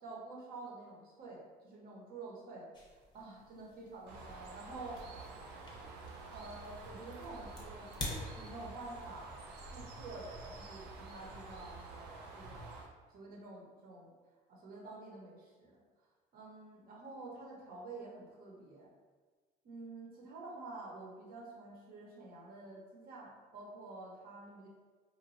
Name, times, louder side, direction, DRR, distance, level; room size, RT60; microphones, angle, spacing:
voice 1, 0.0-2.7 3.1-5.0 6.0-7.9 8.3-9.4 9.7-12.7 13.1-14.1 14.5-15.8 16.3-18.9 19.6-24.7, right 3 dB, 60° right, -3 dB, 0.9 m, -49 dB
sound 1, 2.7-9.1, left 2 dB, 25° left, 0.6 m, -48 dB
Bird, 4.1-12.9, right 3 dB, 75° right, 0.5 m, -49 dB
3.1 x 2.2 x 2.5 m, 1.4 s
cardioid pair, 110°, 17 cm